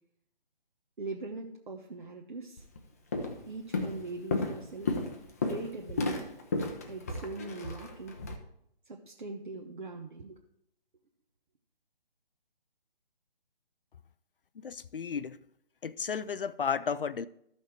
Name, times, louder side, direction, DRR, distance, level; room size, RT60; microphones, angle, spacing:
voice 1, 1.0-2.6 3.5-4.9 5.4-6.3 6.9-8.2 8.9-10.4, right 3 dB, 55° right, 1.1 m, -41 dB
Walk footsteps, 2.6-2.8 3.1-3.4 3.7-8.3, left 3 dB, 15° left, 0.6 m, -33 dB
voice 2, 14.6-15.4 15.8-17.3, left 6 dB, 65° left, 0.5 m, -33 dB
13.0 x 5.8 x 4.6 m
figure-of-eight pair, 145°, 30 cm